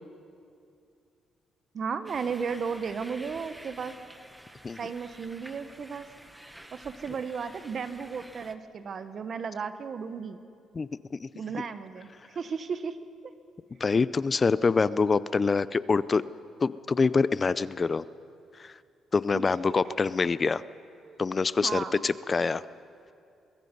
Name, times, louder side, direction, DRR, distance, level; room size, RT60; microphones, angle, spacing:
voice 1, 1.7-4.0 4.8-6.1 6.7-10.4 11.3-12.1 12.3-13.0 19.3-19.9 21.0-21.2 21.6-22.0, right 6 dB, 50° right, 10 dB, 1.2 m, -34 dB
sound 1, 2.0-8.5, right 1 dB, 10° right, 1.2 m, -50 dB
voice 2, 10.7-11.3 13.8-16.2 16.6-18.0 18.6-18.8 19.1-20.6 21.2-22.6, left 4 dB, 35° left, 17 dB, 0.5 m, -25 dB
23.0 x 22.5 x 5.4 m, 2.5 s
cardioid pair, 90°, 0 cm